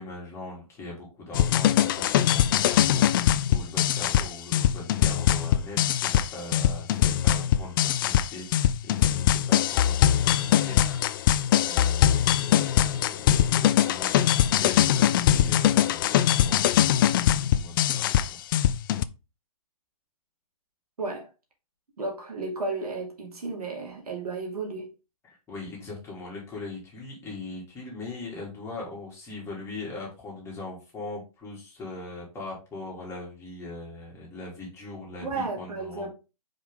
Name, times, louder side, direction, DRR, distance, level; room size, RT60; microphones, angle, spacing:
voice 1, 0.0-18.4 25.3-36.1, left 2 dB, 15° left, 2.9 m, -40 dB
sound 1, 1.3-19.0, left 11 dB, 35° left, 0.4 m, -22 dB
voice 2, 21.0-21.3 22.0-24.9 35.2-36.1, right 3 dB, 80° right, 2.5 m, -33 dB
5.3 x 5.0 x 3.8 m
hypercardioid pair, 135°, 19 cm